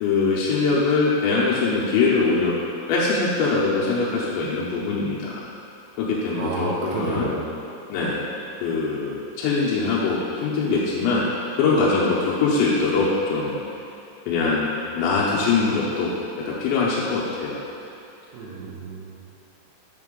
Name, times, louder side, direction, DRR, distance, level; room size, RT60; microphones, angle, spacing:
voice 1, 0.0-2.5 2.9-5.5 6.0-7.3 7.9-8.2 8.6-11.2 11.6-13.6 14.3-16.1 16.5-17.6, left 4 dB, 85° left, -6 dB, 3.1 m, -22 dB
voice 2, 6.4-7.5 18.3-19.2, right 2 dB, 80° right, -4 dB, 3.2 m, -30 dB
8.3 x 5.3 x 3.7 m, 2.7 s
omnidirectional pair, 5.2 m